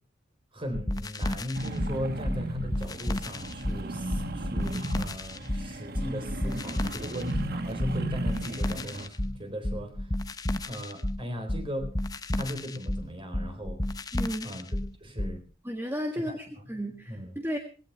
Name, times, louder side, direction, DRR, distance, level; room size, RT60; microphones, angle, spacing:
voice 1, 0.5-10.1 10.6-11.9 12.3-13.8 14.4-14.7 15.0-15.4 16.1-16.4 17.1-17.3, equal, 25° right, 7 dB, 3.9 m, -38 dB
sound 1, 0.7-15.4, left 1 dB, 20° left, 0.7 m, -32 dB
sound 2, 1.5-9.1, right 1 dB, 50° right, 1.2 m, -35 dB
voice 2, 14.1-14.5 15.6-17.6, equal, 10° right, 4 dB, 1.7 m, -33 dB
19.0 x 17.0 x 3.3 m, 0.37 s
head